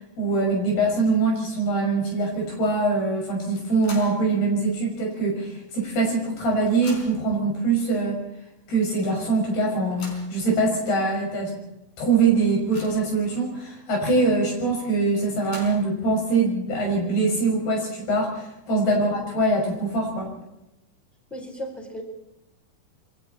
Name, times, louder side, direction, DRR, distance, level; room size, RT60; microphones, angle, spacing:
voice 1, 0.2-8.2 8.7-11.5 12.0-20.3, right 3 dB, 90° left, 0 dB, 8.1 m, -23 dB
sound 1, 3.6-4.3 4.7-4.8 5.8-5.9 6.2-7.3 8.1-8.2 8.6-8.7 9.7-10.4 11.1-11.2 11.6-11.7 12.1-13.2 15.1-16.0, left 2 dB, 65° left, 6.5 m, -42 dB
voice 2, 21.3-22.0, equal, ahead, 2 dB, 4.0 m, -36 dB
27.0 x 23.0 x 4.3 m, 0.90 s
omnidirectional pair, 4.4 m